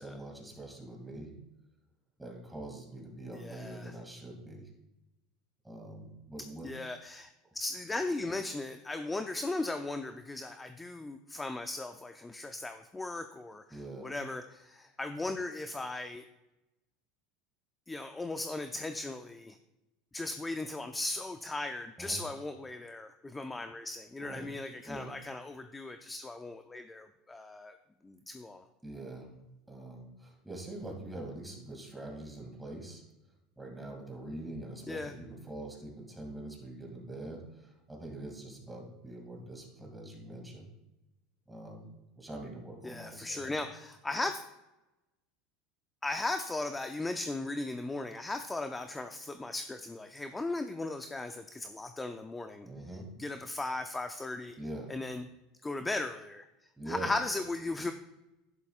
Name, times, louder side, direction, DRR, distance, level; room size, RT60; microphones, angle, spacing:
voice 1, 0.0-1.3 2.2-4.7 5.6-6.8 13.7-14.1 22.0-22.2 24.2-24.5 24.9-25.1 28.8-29.3 29.7-33.0 33.6-40.7 41.5-43.6 52.6-53.1 54.6-54.9 56.8-57.1, right 2 dB, 5° right, 0 dB, 2.4 m, -44 dB
voice 2, 3.3-3.9 6.6-16.2 17.9-19.6 20.1-27.7 28.0-28.6 34.9-35.1 42.8-44.4 46.0-52.7 53.2-54.6 54.9-55.2 55.6-56.4 56.9-57.9, left 2 dB, 10° left, 7 dB, 0.4 m, -37 dB
11.5 x 11.0 x 2.4 m, 0.98 s
supercardioid pair, 135°, 0 cm